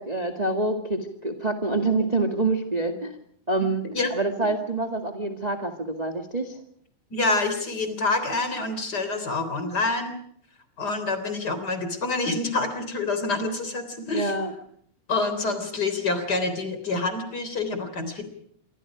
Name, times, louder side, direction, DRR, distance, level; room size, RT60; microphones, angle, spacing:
voice 1, 0.0-3.2 3.5-3.8 4.1-6.6 14.1-14.5, right 2 dB, 15° right, 5 dB, 1.6 m, -26 dB
voice 2, 7.1-10.2 10.8-14.3 15.1-18.2, left 3 dB, 35° left, 9 dB, 3.9 m, -27 dB
27.5 x 24.5 x 5.0 m, 0.67 s
omnidirectional pair, 3.4 m